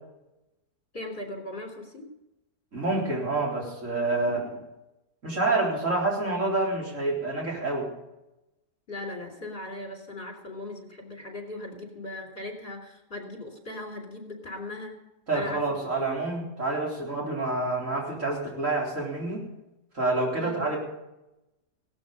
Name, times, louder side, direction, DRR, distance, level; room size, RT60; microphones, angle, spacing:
voice 1, 0.9-2.1 8.9-14.9 15.3-15.9 20.3-20.8, left 2 dB, 35° left, 3 dB, 3.5 m, -39 dB
voice 2, 2.7-4.6 5.2-7.9 15.3-19.5 19.9-20.8, right 2 dB, 50° right, -2 dB, 4.3 m, -28 dB
17.0 x 12.5 x 5.5 m, 0.94 s
omnidirectional pair, 1.7 m